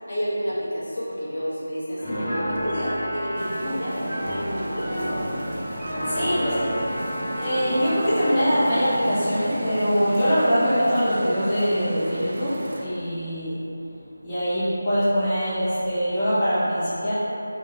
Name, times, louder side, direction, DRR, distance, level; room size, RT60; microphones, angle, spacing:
voice 1, 0.1-5.4 5.9-6.3, equal, 50° left, -8 dB, 0.7 m, -31 dB
Piano, 2.0-8.9, right 1 dB, ahead, 1.3 m, -33 dB
Trumpet, 2.2-8.5, equal, 65° left, 1.2 m, -34 dB
sound 1, 3.4-12.9, right 1 dB, 40° right, 0.3 m, -35 dB
voice 2, 6.1-6.7 7.4-13.6 14.2-17.1, equal, 15° left, -14 dB, 1.0 m, -23 dB
2.8 x 2.6 x 3.9 m, 2.8 s
figure-of-eight pair, 165°, 0 cm